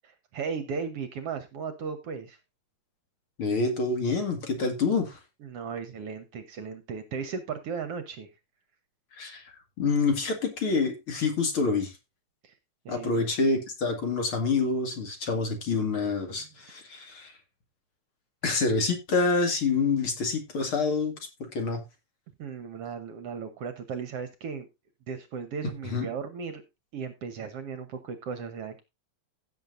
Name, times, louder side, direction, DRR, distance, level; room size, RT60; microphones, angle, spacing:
voice 1, 0.0-2.4 5.4-8.3 12.4-12.5 12.9-13.3 16.4-16.5 22.4-24.7 25.1-26.6 26.9-28.8, right 6 dB, 60° right, 10 dB, 1.8 m, -36 dB
voice 2, 3.4-5.2 9.2-11.9 12.9-17.3 18.4-21.8 25.9-26.1, left 4 dB, 45° left, 5 dB, 2.8 m, -27 dB
16.0 x 7.5 x 2.6 m, 0.24 s
omnidirectional pair, 3.4 m